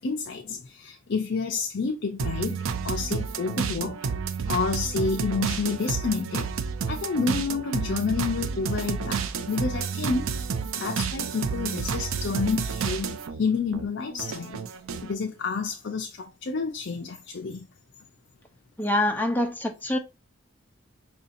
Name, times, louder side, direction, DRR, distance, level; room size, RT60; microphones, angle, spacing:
voice 1, 0.0-2.6 2.8-4.0 4.4-6.5 6.9-10.2 10.7-14.6 15.0-17.6, left 4 dB, 60° left, 0.5 m, -29 dB
sound 1, 2.2-13.4 13.7-15.1, right 6 dB, 85° right, 0.5 m, -30 dB
voice 2, 18.8-20.0, left 1 dB, 10° left, 0.6 m, -25 dB
5.6 x 2.7 x 2.6 m
head